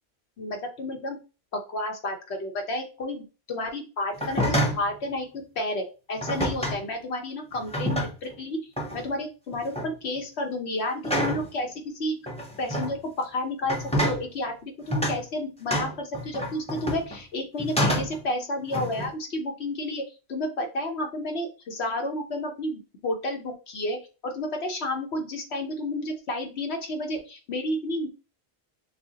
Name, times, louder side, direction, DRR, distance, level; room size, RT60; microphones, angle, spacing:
voice 1, 0.4-1.2 1.7-8.6 8.9-12.2 12.6-20.0 20.3-24.0 24.2-28.1, left 1 dB, 85° left, 3 dB, 1.3 m, -31 dB
sound 1, 4.1-4.9 6.2-6.8 7.5-8.3 8.8-9.1 9.5-9.9 11.0-11.5 12.3-12.9 13.6-14.2 14.9-15.2 15.7-17.2 17.6-18.2 18.7-19.1, equal, 5° left, 0.7 m, -27 dB
6.6 x 2.3 x 2.8 m, 0.32 s
omnidirectional pair, 1.1 m